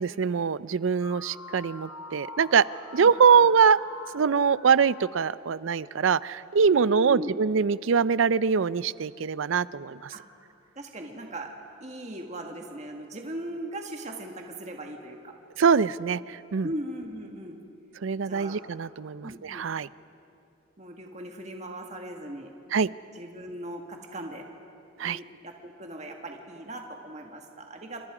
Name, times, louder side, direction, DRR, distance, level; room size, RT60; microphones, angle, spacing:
voice 1, 0.0-2.7 2.9-3.8 4.1-10.1 15.6-16.7 18.0-19.9 22.7-22.9 25.0-25.2, right 6 dB, 75° right, 18 dB, 0.5 m, -23 dB
sound 1, 1.0-6.1, left 2 dB, 15° right, 6.1 m, -45 dB
voice 2, 3.0-3.4 6.7-7.4 10.1-10.2 10.8-11.5 11.8-15.3 16.6-17.6 18.3-18.6 19.2-19.6 20.8-22.5 23.1-24.4 25.0-28.0, right 1 dB, 35° right, 2 dB, 1.7 m, -38 dB
28.0 x 26.5 x 5.0 m, 2.7 s
head